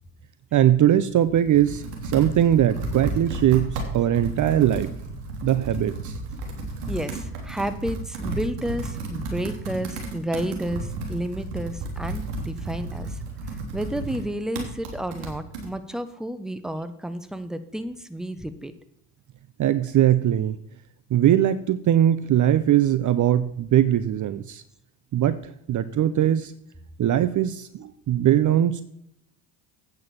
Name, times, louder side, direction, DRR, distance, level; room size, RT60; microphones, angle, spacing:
voice 1, 0.5-4.9 5.4-6.1 19.6-20.6 21.1-24.6 25.1-25.3 25.7-26.5 27.0-28.8, right 11 dB, 40° right, 14 dB, 0.7 m, -20 dB
Computer keyboard, 1.1-15.7, right 2 dB, 80° right, 3.0 m, -33 dB
voice 2, 6.9-13.2 13.7-18.7, equal, ahead, 11 dB, 1.1 m, -31 dB
8.7 x 6.5 x 7.1 m, 0.75 s
hypercardioid pair, 65°, 46 cm